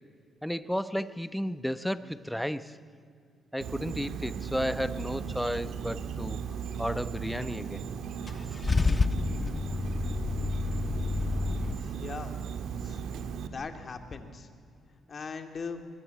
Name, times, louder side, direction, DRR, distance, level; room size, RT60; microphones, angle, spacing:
voice 1, 0.4-2.8 3.5-6.4 6.8-7.8, equal, ahead, 13 dB, 1.0 m, -33 dB
Insect, 3.6-13.5, right 7 dB, 75° right, 1.7 m, -37 dB
Car / Engine starting / Idling, 8.3-11.7, left 3 dB, 25° left, 0.6 m, -28 dB
voice 2, 11.7-12.3 12.8-13.0 13.5-14.5 15.1-15.8, left 5 dB, 40° left, 7 dB, 2.5 m, -40 dB
22.5 x 22.0 x 8.3 m, 2.4 s
cardioid pair, 90°, 0 cm